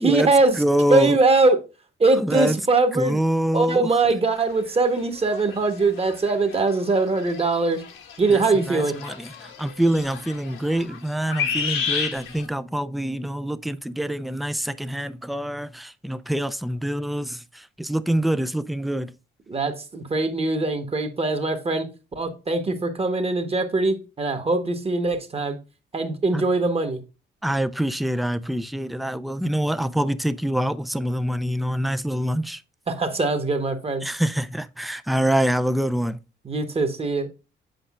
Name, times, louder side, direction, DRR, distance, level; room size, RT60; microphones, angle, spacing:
voice 1, 0.0-0.6 0.9-1.6 2.0-3.2 3.5-7.8 8.2-8.9 19.5-21.9 22.1-25.6 25.9-27.0 32.9-34.0 36.4-37.3, right 3 dB, 30° right, 1.2 m, -22 dB
voice 2, 0.5-1.2 2.1-2.6 2.9-4.1 8.3-19.1 26.3-26.4 27.4-32.6 34.0-36.2, right 1 dB, ahead, 0.4 m, -25 dB
sound 1, 4.5-4.6 5.0-12.4, left 6 dB, 80° left, 1.4 m, -32 dB
7.8 x 5.0 x 2.4 m
cardioid pair, 90°, 20 cm